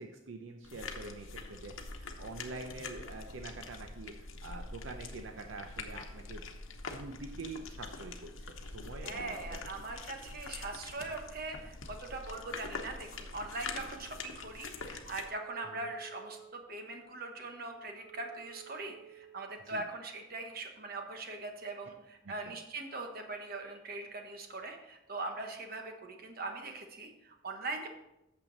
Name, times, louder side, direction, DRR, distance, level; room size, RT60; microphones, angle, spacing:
voice 1, 0.0-6.4 6.9-9.6 15.6-15.9 19.7-19.8 22.2-22.6, right 3 dB, 75° right, 5 dB, 0.6 m, -46 dB
sound 1, 0.6-15.2, left 4 dB, 85° left, 1.0 m, -44 dB
voice 2, 9.0-27.9, right 3 dB, 50° right, 4 dB, 1.1 m, -41 dB
Wind instrument woodwind instrument, 15.2-19.4, right 8 dB, 20° right, 3.1 m, -54 dB
8.8 x 6.8 x 4.0 m, 0.90 s
head